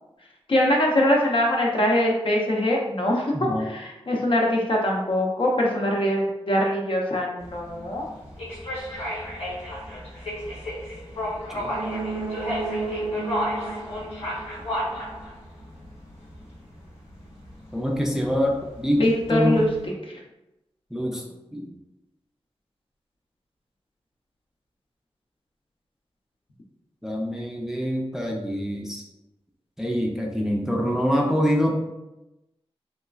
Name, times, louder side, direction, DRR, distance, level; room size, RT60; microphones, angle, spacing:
voice 1, 0.5-8.1 19.0-19.7, left 1 dB, 60° left, -1 dB, 0.6 m, -23 dB
voice 2, 3.3-3.7 11.5-11.7 17.7-19.6 20.9-21.2 21.5-21.7 27.0-29.0 29.8-31.7, equal, 5° right, -2 dB, 0.4 m, -25 dB
sound 1, 7.4-19.9, equal, 85° left, 0.8 m, -34 dB
sound 2, 11.6-15.3 15.6-15.7, right 3 dB, 55° right, 0.5 m, -33 dB
3.0 x 2.3 x 2.3 m, 0.96 s
wide cardioid pair, 80°, 10 cm